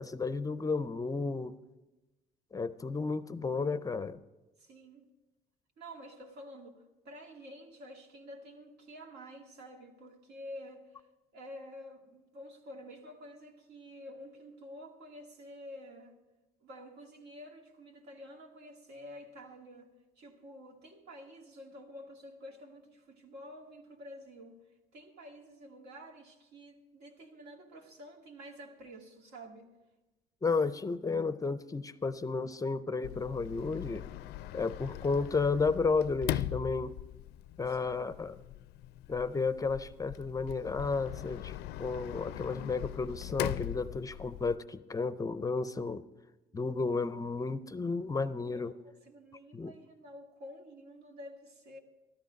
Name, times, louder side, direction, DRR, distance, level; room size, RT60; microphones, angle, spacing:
voice 1, 0.0-1.5 2.5-4.2 30.4-34.1 34.5-36.9 37.6-38.4 39.1-41.5 41.8-46.0 46.5-48.7 49.5-49.7, left 4 dB, 20° left, 0.5 m, -32 dB
voice 2, 4.6-5.1 5.8-11.1 11.3-16.2 16.6-24.6 24.9-29.7 37.7-37.8 48.5-51.8, equal, 80° right, 2.0 m, -49 dB
Sliding door, 33.0-44.6, left 13 dB, 80° left, 0.4 m, -40 dB
13.5 x 13.0 x 5.1 m
cardioid pair, 110°, 17 cm